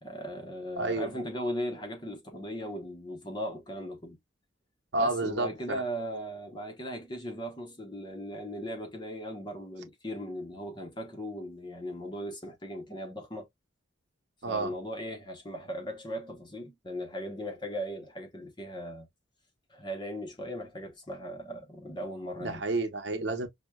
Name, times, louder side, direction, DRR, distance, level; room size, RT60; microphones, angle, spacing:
voice 1, 0.0-4.2 5.0-13.5 14.5-19.1 19.7-22.6, equal, 25° left, 0.7 m, -38 dB
voice 2, 0.8-1.1 4.9-5.8 14.4-14.7 22.4-23.5, right 2 dB, 60° right, 0.8 m, -30 dB
5.8 x 2.1 x 2.2 m
head